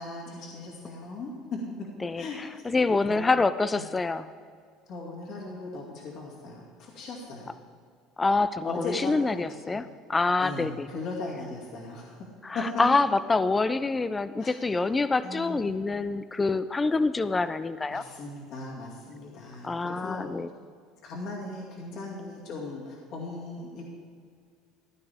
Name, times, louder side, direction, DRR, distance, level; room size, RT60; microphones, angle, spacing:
voice 1, 0.0-1.9 2.2-2.7 3.1-3.2 3.7-3.9 4.9-7.5 8.6-9.8 10.4-12.3 12.5-12.7 14.4-14.5 15.2-15.7 17.9-20.3 21.0-23.8, left 2 dB, 45° left, -3 dB, 2.3 m, -38 dB
voice 2, 2.0-4.2 8.2-10.9 12.4-18.0 19.6-20.5, left 3 dB, 15° left, 14 dB, 0.3 m, -26 dB
14.5 x 12.0 x 3.6 m, 2.1 s
cardioid pair, 160°, 0 cm